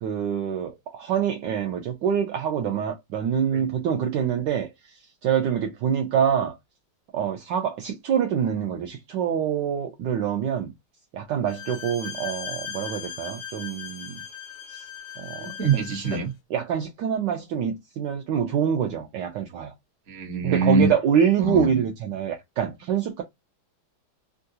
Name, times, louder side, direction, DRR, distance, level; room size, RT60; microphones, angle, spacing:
voice 1, 0.0-4.7 5.2-6.5 7.1-10.7 11.1-14.2 14.7-14.8 15.2-15.8 16.5-19.7 20.4-23.2, right 8 dB, 75° right, 1.1 m, -25 dB
Bowed string instrument, 11.5-16.3, left 8 dB, 90° left, 1.4 m, -38 dB
voice 2, 15.4-16.3 20.1-20.9 21.4-21.7, right 4 dB, 45° right, 1.0 m, -24 dB
3.6 x 2.3 x 2.7 m
omnidirectional pair, 2.3 m